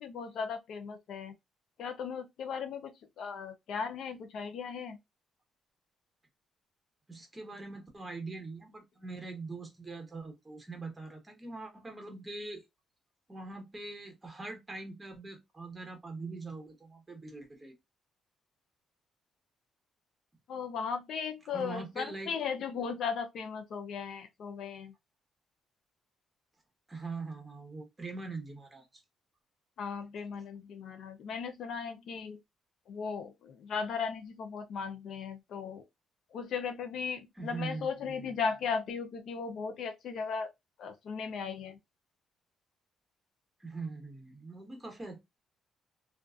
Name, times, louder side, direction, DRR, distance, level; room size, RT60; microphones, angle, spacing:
voice 1, 0.0-1.3 1.8-5.0 20.5-24.9 29.8-32.4 32.9-35.8 36.3-40.5 40.8-41.8, left 6 dB, 70° left, 0.5 m, -37 dB
voice 2, 7.1-12.6 13.3-17.7 21.5-22.3 26.9-28.8 37.4-38.3 43.6-45.2, right 3 dB, 20° right, 1.1 m, -42 dB
2.4 x 2.3 x 2.4 m
cardioid pair, 90°, 0 cm